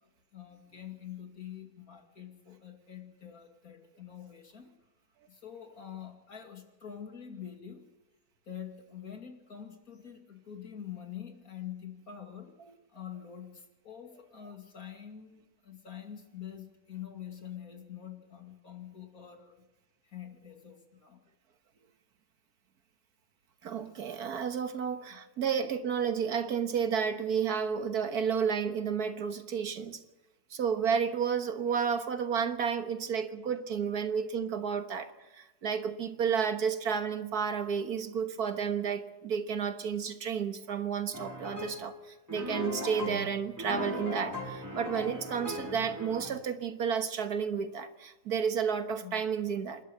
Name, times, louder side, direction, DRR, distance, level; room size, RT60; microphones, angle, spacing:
voice 1, 0.0-4.7 5.3-7.8 8.5-12.5 12.9-19.6 20.0-21.2 25.1-25.2 49.0-49.3, left 9 dB, 60° left, 2.9 m, -46 dB
voice 2, 23.6-30.0 30.5-49.8, right 7 dB, 70° right, 1.8 m, -31 dB
sound 1, 41.1-41.9 42.3-46.3, left 1 dB, 10° right, 3.6 m, -38 dB
27.0 x 12.0 x 8.1 m
omnidirectional pair, 1.7 m